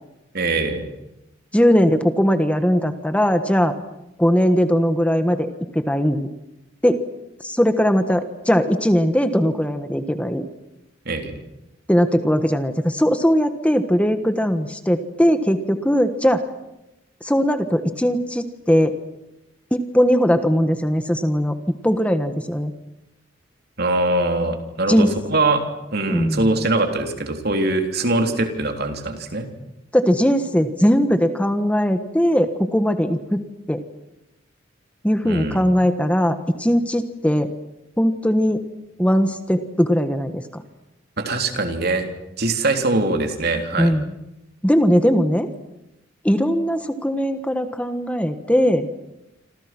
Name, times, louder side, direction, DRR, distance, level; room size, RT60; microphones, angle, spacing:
voice 1, 0.3-0.9 11.1-11.4 23.8-25.6 25.9-29.5 35.2-35.6 41.2-42.1 42.4-44.0, right 2 dB, 55° right, 5 dB, 3.5 m, -22 dB
voice 2, 1.5-3.7 4.2-6.3 6.8-7.0 7.4-10.5 11.9-16.5 17.2-19.0 19.7-21.5 21.8-22.7 24.9-25.1 26.1-26.5 29.9-33.8 35.0-37.5 38.0-38.6 39.0-40.6 43.8-44.1 44.6-45.5 46.2-48.9, equal, 5° left, 8 dB, 1.4 m, -19 dB
28.0 x 26.5 x 6.1 m, 0.92 s
head